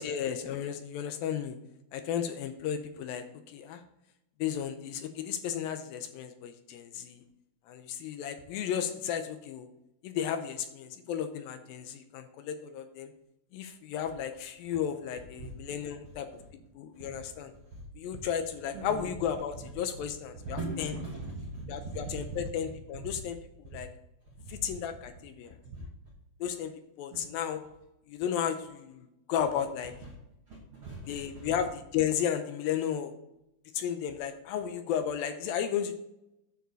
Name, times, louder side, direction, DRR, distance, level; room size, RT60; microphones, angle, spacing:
voice 1, 0.0-1.6 1.9-3.8 4.4-7.2 7.7-9.7 10.0-13.1 13.5-16.3 16.8-17.5 18.0-21.0 21.7-23.9 24.5-25.6 26.4-26.7 27.0-27.6 28.1-29.9 31.1-33.1 33.7-35.9, left 9 dB, 80° left, 8 dB, 2.3 m, -34 dB
voice 2, 20.4-22.0 24.5-24.6 25.7-25.8 27.1-27.3 30.5-31.5, right 2 dB, 65° right, -1 dB, 1.3 m, -39 dB
10.5 x 7.0 x 4.0 m, 0.88 s
omnidirectional pair, 4.5 m